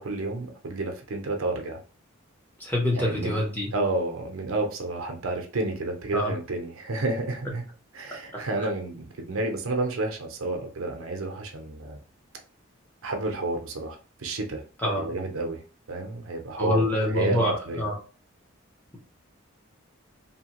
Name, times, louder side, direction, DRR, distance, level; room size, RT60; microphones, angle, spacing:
voice 1, 0.0-1.8 2.9-3.3 3.7-7.6 7.9-12.0 13.0-14.6 15.0-15.6 15.9-17.8, right 2 dB, 80° right, 3 dB, 0.6 m, -30 dB
voice 2, 2.6-3.7 6.1-6.3 8.3-8.7 14.8-15.1 16.6-18.0, left 1 dB, 10° left, -3 dB, 0.7 m, -26 dB
2.8 x 2.2 x 2.9 m, 0.37 s
head